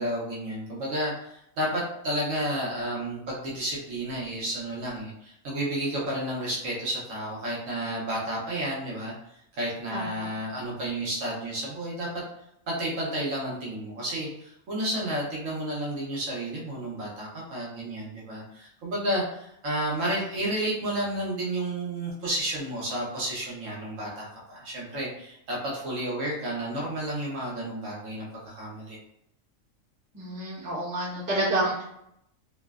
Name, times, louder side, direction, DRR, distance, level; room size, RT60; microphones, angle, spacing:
voice 1, 0.0-9.1 9.6-12.1 12.7-29.0, right 1 dB, 70° right, -4 dB, 1.2 m, -31 dB
voice 2, 9.9-10.3 30.1-31.8, right 1 dB, 15° right, -8 dB, 0.8 m, -29 dB
3.0 x 2.0 x 2.3 m, 0.76 s
omnidirectional pair, 1.4 m